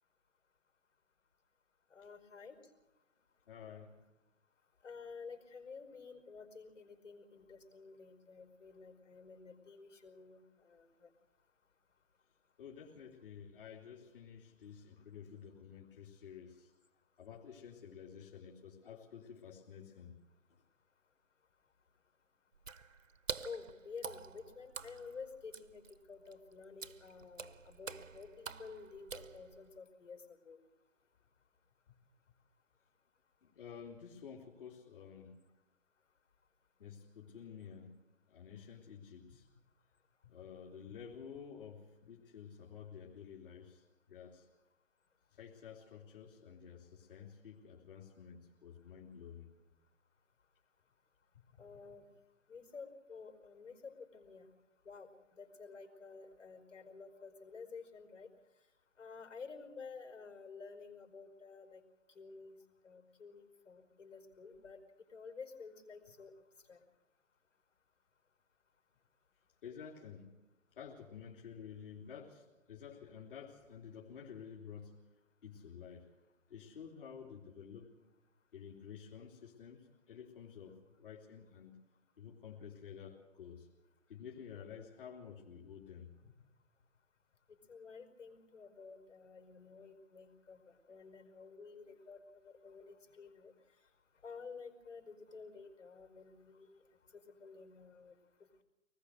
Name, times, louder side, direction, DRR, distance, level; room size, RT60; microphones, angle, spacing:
voice 1, 1.9-2.6 4.8-11.1 23.4-30.6 51.6-52.1 52.5-54.5 54.8-58.3 59.0-61.8 62.1-62.6 62.8-64.8 65.1-66.3 66.7-66.8 87.5-93.9 94.2-96.8 97.1-98.2, left 5 dB, 70° left, 6 dB, 5.2 m, -51 dB
voice 2, 3.5-4.0 12.6-16.7 17.2-20.2 33.4-35.4 36.8-38.0 38.3-39.5 40.2-44.5 45.3-49.5 69.6-70.3 70.7-75.0 75.4-76.1 76.5-77.9 78.5-81.8 82.2-83.7 84.1-86.3, left 7 dB, 45° left, -1 dB, 3.3 m, -51 dB
Water / Splash splatter, 22.5-29.8, right 5 dB, 85° right, 1.3 m, -47 dB
24.5 x 20.0 x 6.5 m, 1.0 s
figure-of-eight pair, 150°, 39 cm